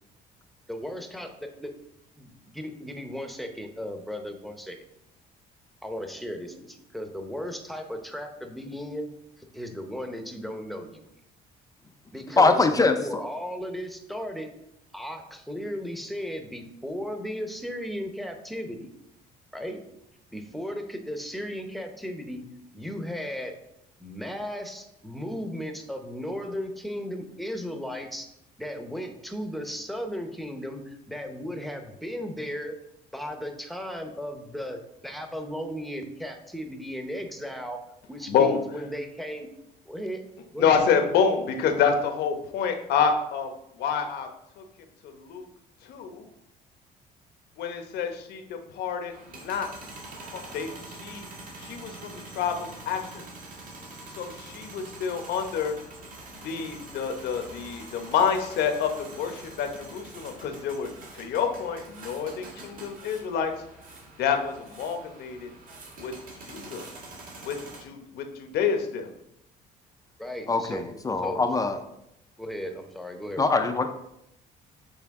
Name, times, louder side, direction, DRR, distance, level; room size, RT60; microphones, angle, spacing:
voice 1, 0.7-1.7 2.2-4.8 5.8-9.1 9.4-11.0 12.1-14.5 14.9-18.9 19.5-19.8 20.3-22.4 22.7-23.5 24.0-28.3 28.6-32.8 33.1-37.8 38.1-39.5 39.8-40.2 40.5-40.8 70.2-71.0 71.2-71.4 72.4-73.6, equal, ahead, 5 dB, 0.8 m, -36 dB
voice 2, 12.4-13.0 70.5-71.8 73.4-73.9, left 3 dB, 20° left, 7 dB, 0.5 m, -22 dB
voice 3, 38.3-38.6 40.6-43.5 43.8-44.3 44.6-44.7 45.0-45.5 45.8-46.3 47.6-49.7 50.3-51.3 51.6-53.3 54.2-55.8 56.4-63.5 64.2-65.5 66.0-66.1 66.4-66.9 67.4-69.1, left 6 dB, 75° left, 6 dB, 0.9 m, -28 dB
sound 1, 49.1-67.8, right 2 dB, 55° right, 1.8 m, -45 dB
8.1 x 3.4 x 3.6 m, 0.80 s
cardioid pair, 110°, 17 cm